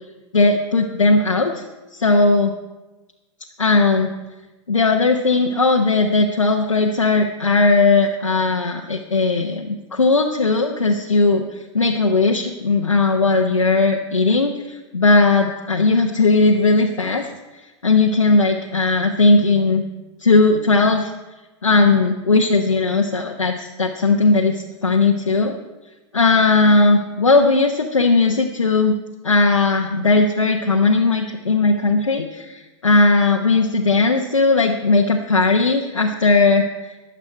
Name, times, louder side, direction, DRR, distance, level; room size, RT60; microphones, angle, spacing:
voice 1, 0.3-1.6 1.9-2.5 3.6-4.1 4.7-17.3 17.8-19.8 20.2-21.1 21.6-25.5 26.1-29.0 29.2-36.9, left 3 dB, 85° left, 1 dB, 1.0 m, -17 dB
22.0 x 7.4 x 4.5 m, 1.1 s
figure-of-eight pair, 95°, 16 cm